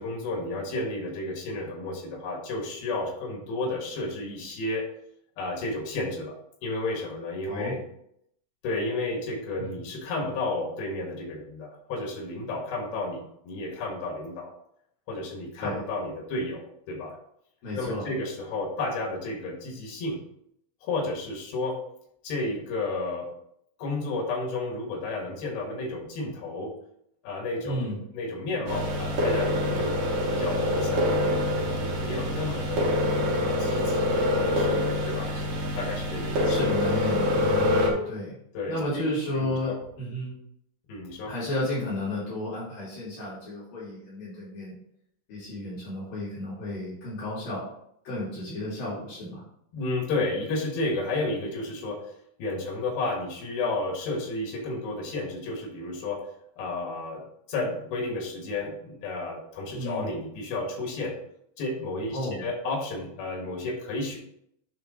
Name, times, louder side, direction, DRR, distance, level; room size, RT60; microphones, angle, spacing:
voice 1, 0.0-4.9 5.4-7.8 8.6-14.5 15.1-17.2 17.7-20.2 20.8-21.8 22.2-23.3 23.8-26.7 27.2-30.0 30.3-32.9 33.3-35.4 35.8-36.6 38.5-39.1 39.4-39.8 40.9-41.3 49.7-52.1 52.4-56.2 56.6-57.2 57.5-61.2 61.6-64.2, left 2 dB, 90° left, 1 dB, 3.5 m, -32 dB
voice 2, 17.6-18.1 27.6-28.0 36.5-38.4 38.7-40.3 41.2-44.8 45.3-47.6 48.0-49.4 59.7-60.1 62.1-62.5, left 1 dB, 70° left, -10 dB, 4.8 m, -33 dB
sound 1, 28.7-37.9, left 1 dB, 65° right, 3.0 m, -25 dB
10.0 x 3.7 x 3.7 m, 0.72 s
omnidirectional pair, 4.2 m